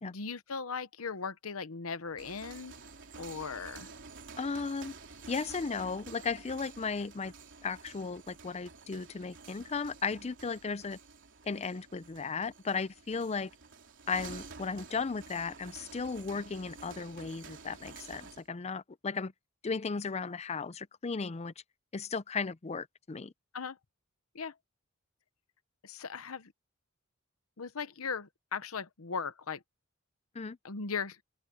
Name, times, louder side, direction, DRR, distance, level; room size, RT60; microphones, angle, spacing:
voice 1, 0.0-2.8 3.2-3.9 23.5-23.8 24.3-24.5 25.8-26.5 27.6-29.6 30.6-31.2, left 5 dB, 85° left, 1.0 m, -38 dB
sound 1, 2.0-18.5, right 4 dB, 60° right, 3.5 m, -50 dB
voice 2, 4.4-4.9 5.3-7.3 7.6-11.0 11.5-13.5 14.1-19.3 19.6-21.5 21.9-23.3 30.3-30.6, left 4 dB, 30° left, 0.5 m, -35 dB
open air
head